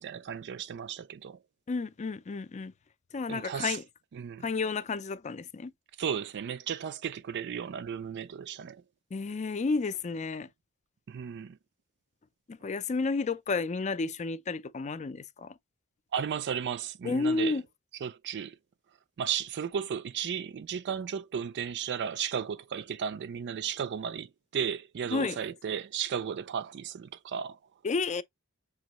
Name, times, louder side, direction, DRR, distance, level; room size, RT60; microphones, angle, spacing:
voice 1, 0.0-1.4 3.3-3.8 4.1-4.4 6.0-8.8 11.1-11.6 16.1-17.6 18.0-18.5 19.2-24.3 24.5-27.6, right 7 dB, 50° right, 0.4 m, -34 dB
voice 2, 1.7-2.7 3.1-3.8 4.4-5.7 9.1-10.5 12.5-15.5 17.0-17.6 25.1-25.4 27.8-28.2, left 4 dB, 30° left, 0.4 m, -31 dB
6.2 x 2.9 x 2.9 m
head